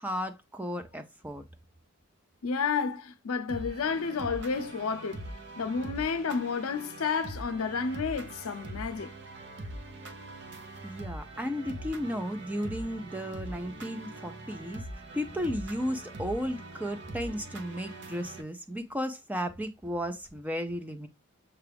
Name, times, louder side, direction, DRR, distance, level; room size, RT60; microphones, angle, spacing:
voice 1, 0.0-1.4 10.8-14.8 15.1-21.1, equal, 5° right, 0.4 m, -34 dB
voice 2, 2.4-5.2 5.6-9.1, left 5 dB, 85° left, 0.5 m, -31 dB
sound 1, 3.5-18.4, right 1 dB, 50° right, 0.7 m, -43 dB
6.6 x 2.4 x 3.3 m
head